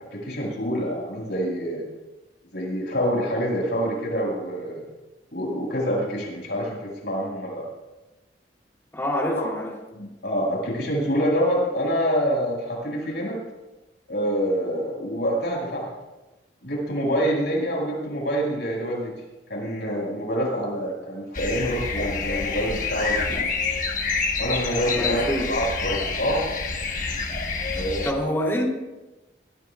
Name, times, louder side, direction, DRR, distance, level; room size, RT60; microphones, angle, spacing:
voice 1, 0.1-1.8 2.5-4.8 5.3-7.6 9.3-9.5 9.9-13.4 14.1-15.9 16.6-19.1 19.5-23.5 24.4-26.5 27.7-28.1, equal, 70° left, -3 dB, 6.2 m, -26 dB
voice 2, 8.9-9.7 24.9-25.5 27.8-28.6, equal, 15° left, -3 dB, 3.4 m, -26 dB
sound 1, 21.3-28.1, left 4 dB, 45° left, 1.4 m, -28 dB
22.5 x 15.0 x 2.5 m, 1.1 s
head